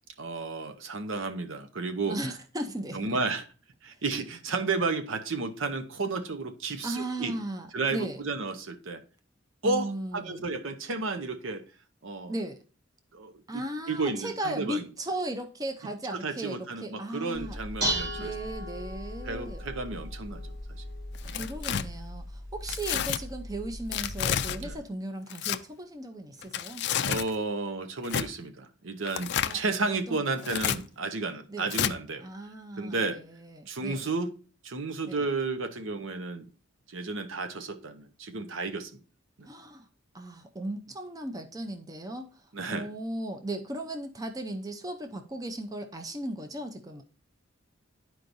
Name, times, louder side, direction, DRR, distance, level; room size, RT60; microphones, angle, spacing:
voice 1, 0.2-2.1 2.9-3.4 3.8-7.3 7.7-9.0 9.6-11.6 12.0-12.3 13.1-14.8 16.1-18.3 19.3-20.4 21.2-21.4 24.6-24.8 27.0-32.3 32.8-33.2 33.7-34.3 34.6-36.5 36.9-38.9 39.4-39.5 42.5-42.9, right 3 dB, 75° right, 0.8 m, -32 dB
voice 2, 2.1-3.2 6.8-8.2 9.6-10.4 12.3-12.6 13.5-17.6 18.2-19.6 21.2-26.8 29.4-29.6 29.9-30.6 31.5-31.7 32.2-34.1 35.1-35.3 39.4-39.9 40.1-47.0, right 1 dB, 20° right, 0.6 m, -36 dB
Dishes pots and pans, 17.3-24.7, equal, 55° right, 3.5 m, -37 dB
Tearing, 21.1-21.8 22.7-23.2 23.9-24.6 25.3-25.6 26.4-27.3 28.0-28.3 29.1-29.6 30.4-30.8 31.7-31.9, left 9 dB, 55° left, 0.4 m, -29 dB
11.5 x 4.6 x 2.6 m
head